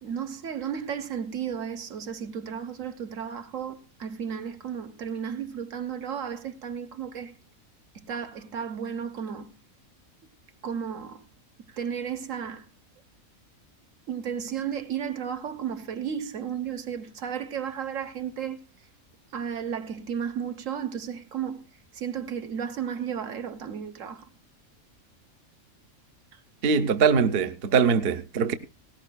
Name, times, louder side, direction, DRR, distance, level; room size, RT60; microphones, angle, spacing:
voice 1, 0.0-7.3 7.9-9.5 10.6-11.2 11.6-12.6 14.1-18.7 19.3-21.6 21.9-24.3 26.3-26.4, right 8 dB, 65° right, 1.4 m, -33 dB
voice 2, 26.6-28.5, right 6 dB, 50° right, 0.9 m, -22 dB
19.0 x 17.5 x 2.2 m
omnidirectional pair, 1.5 m